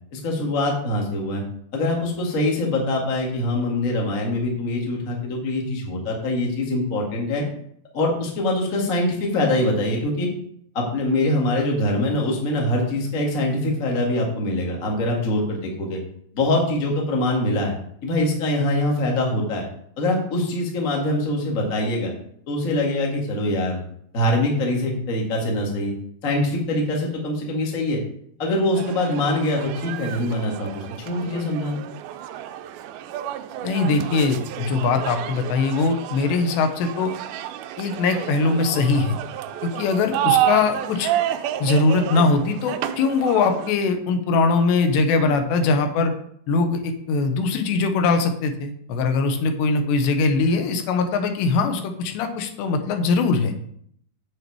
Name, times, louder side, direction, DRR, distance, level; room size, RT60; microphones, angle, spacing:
voice 1, 0.1-1.4 1.7-7.4 7.9-10.3 10.7-16.0 16.3-17.7 18.0-19.6 20.0-22.1 22.5-23.8 24.1-25.9 26.2-28.0 28.4-31.8, left 1 dB, 50° left, -1 dB, 1.0 m, -23 dB
sound 1, 28.7-43.7, right 12 dB, 90° right, 2.1 m, -30 dB
voice 2, 33.6-37.1 37.8-39.2 39.6-41.1 41.6-46.1 46.5-53.5, left 4 dB, 80° left, 6 dB, 3.2 m, -21 dB
8.0 x 7.9 x 4.7 m, 0.67 s
omnidirectional pair, 5.0 m